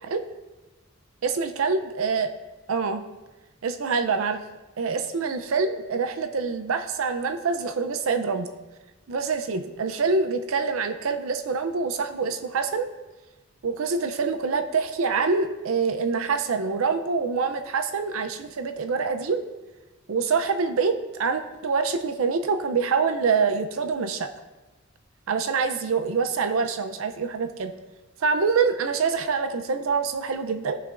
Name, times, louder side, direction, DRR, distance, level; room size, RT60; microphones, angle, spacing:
voice 1, 1.2-2.3 2.7-3.0 3.6-4.4 4.8-8.5 9.1-12.9 13.6-19.4 20.1-24.3 25.3-27.7 28.2-30.8, right 5 dB, 75° right, 8 dB, 0.5 m, -25 dB
16.0 x 5.9 x 2.5 m, 1.2 s
head